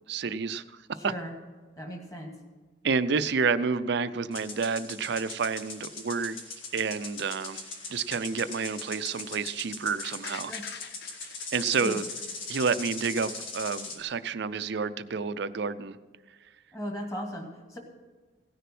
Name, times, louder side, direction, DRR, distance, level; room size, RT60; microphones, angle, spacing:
voice 1, 0.1-1.1 2.8-6.4 6.7-7.6 7.9-10.5 11.5-12.0 12.5-16.0, right 5 dB, 55° right, 14 dB, 0.5 m, -29 dB
voice 2, 1.0-1.3 1.8-2.3 10.5-10.7 11.8-12.0 16.7-17.8, equal, 15° left, 2 dB, 1.8 m, -37 dB
sound 1, 4.3-14.0, left 4 dB, 85° left, 2.0 m, -40 dB
sound 2, 10.0-13.0 13.3-13.4, left 7 dB, 55° left, 0.6 m, -45 dB
16.5 x 6.7 x 6.0 m, 1.4 s
head